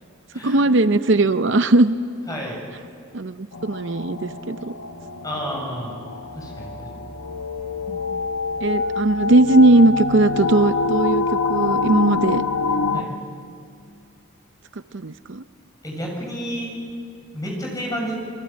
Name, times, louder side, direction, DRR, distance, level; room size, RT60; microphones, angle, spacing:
voice 1, 0.4-2.0 3.1-4.7 7.9-8.3 8.6-12.4 14.9-15.4, right 2 dB, 55° right, 11 dB, 0.7 m, -18 dB
voice 2, 2.3-2.6 5.2-6.0 6.3-6.9 12.9-13.1 15.8-16.7 17.3-18.1, equal, 15° left, -1 dB, 7.2 m, -30 dB
sound 1, 3.5-13.0, left 4 dB, 85° left, 1.4 m, -26 dB
28.5 x 22.5 x 8.9 m, 2.5 s
head